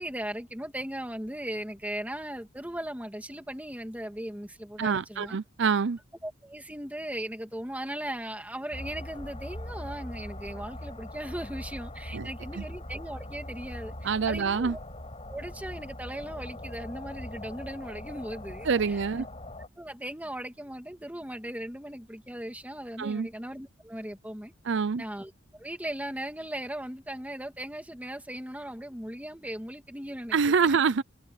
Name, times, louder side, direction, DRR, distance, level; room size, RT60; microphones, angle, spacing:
voice 1, 0.0-5.4 6.2-14.8 15.3-19.2 19.8-24.5 25.0-30.4, right 1 dB, 10° right, 2.7 m, -38 dB
voice 2, 4.8-6.0 12.1-12.3 12.5-12.6 14.0-14.8 18.7-19.3 23.0-23.3 24.6-25.0 30.3-31.0, right 5 dB, 70° right, 0.6 m, -26 dB
sound 1, 8.7-19.7, left 1 dB, 35° left, 5.7 m, -41 dB
head